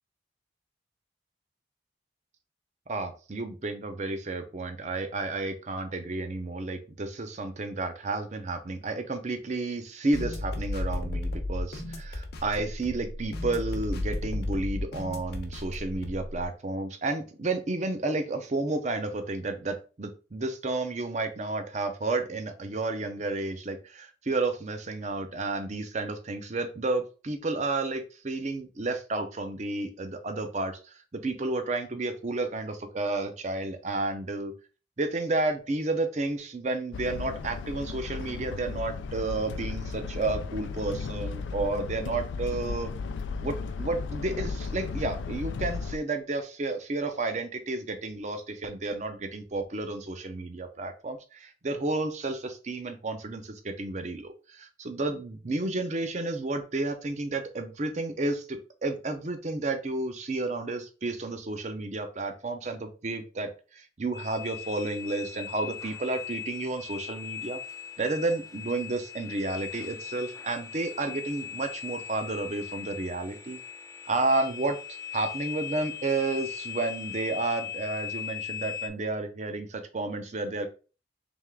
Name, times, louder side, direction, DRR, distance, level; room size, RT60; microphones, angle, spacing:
voice 1, 2.9-34.5 35.0-42.9 43.4-67.6 68.0-73.6 74.1-74.8 75.1-80.7, right 2 dB, 40° right, 7 dB, 0.6 m, -31 dB
sound 1, 10.1-16.5, left 1 dB, 60° left, 0.8 m, -34 dB
sound 2, 36.9-46.0, left 4 dB, 90° left, 0.4 m, -35 dB
sound 3, 64.1-78.9, left 8 dB, 20° left, 0.4 m, -39 dB
3.5 x 3.2 x 3.5 m, 0.35 s
head